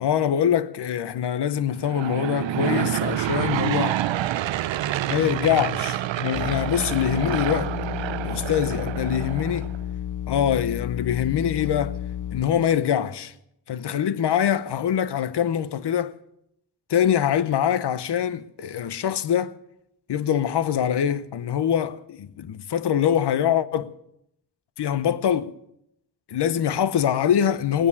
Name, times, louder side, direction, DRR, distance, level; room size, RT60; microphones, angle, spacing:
voice 1, 0.0-4.0 5.1-7.7 8.2-9.7 10.3-12.0 12.3-13.3 13.7-16.2 16.9-19.6 20.1-23.9 24.8-25.5 26.3-27.9, left 9 dB, 65° left, 0.8 m, -24 dB
Aircraft / Engine, 1.8-9.8, right 13 dB, 90° right, 0.6 m, -28 dB
sound 1, 6.3-12.8, left 10 dB, 45° left, 0.5 m, -32 dB
18.5 x 9.8 x 7.0 m
wide cardioid pair, 125°, 43 cm